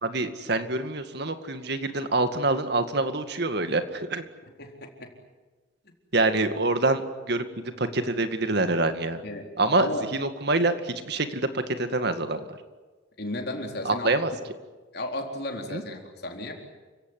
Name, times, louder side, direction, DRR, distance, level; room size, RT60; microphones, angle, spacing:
voice 1, 0.0-4.2 6.1-7.0 7.3-9.2 9.6-12.6 13.8-14.3 15.7-15.8, right 2 dB, 60° right, 8 dB, 2.1 m, -26 dB
voice 2, 4.6-5.1 9.2-10.0 13.2-14.1 14.9-16.5, left 1 dB, 55° left, 3 dB, 4.1 m, -34 dB
29.5 x 17.0 x 9.9 m, 1.3 s
head